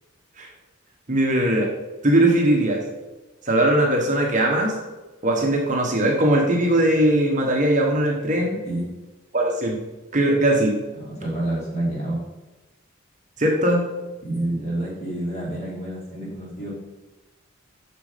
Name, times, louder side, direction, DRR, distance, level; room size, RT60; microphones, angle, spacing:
voice 1, 1.1-1.7 2.0-2.8 3.5-4.7 5.2-8.6 9.3-9.8 10.1-10.7 13.4-13.8, right 1 dB, 35° right, 0 dB, 1.2 m, -20 dB
voice 2, 11.1-12.2 14.2-16.7, right 1 dB, 30° left, -6 dB, 3.4 m, -28 dB
8.0 x 6.3 x 5.0 m, 1.1 s
head